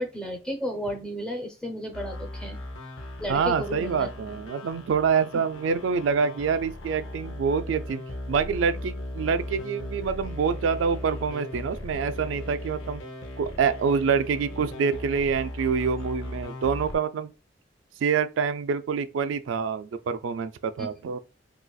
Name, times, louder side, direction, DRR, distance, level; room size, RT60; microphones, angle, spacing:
voice 1, 0.0-2.6 3.2-4.1 5.3-5.4 20.8-21.1, equal, 5° left, 0.6 m, -33 dB
sound 1, 1.9-16.9, left 1 dB, 90° left, 0.7 m, -38 dB
voice 2, 3.3-8.0 8.3-13.0 13.4-17.3 18.0-21.2, right 6 dB, 80° right, 0.3 m, -26 dB
3.9 x 2.4 x 2.3 m
head